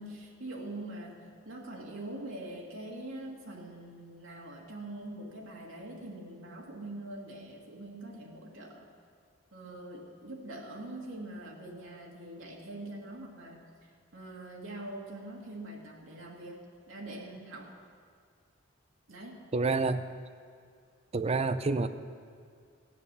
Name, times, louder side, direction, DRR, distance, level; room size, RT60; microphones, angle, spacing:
voice 1, 0.0-8.9 9.5-17.8 19.1-19.4, right 1 dB, 85° right, -2 dB, 2.2 m, -43 dB
voice 2, 19.5-20.0 21.1-21.9, right 3 dB, 30° right, 11 dB, 0.5 m, -28 dB
15.0 x 8.9 x 6.8 m, 2.2 s
head